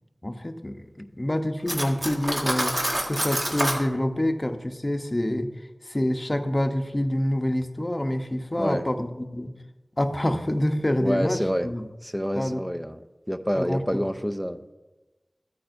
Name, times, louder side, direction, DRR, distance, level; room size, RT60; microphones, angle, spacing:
voice 1, 0.2-2.8 3.1-5.5 5.8-9.5 10.0-11.8 12.3-12.6 13.6-13.8, left 1 dB, 30° left, 6 dB, 0.8 m, -27 dB
Cutlery silverware, 1.7-3.8, right 1 dB, 45° right, 1.5 m, -27 dB
voice 2, 11.0-11.7 12.0-13.0 13.3-14.7, equal, 5° right, 8 dB, 0.5 m, -27 dB
14.0 x 8.8 x 2.6 m, 1.1 s
wide cardioid pair, 45°, 0 cm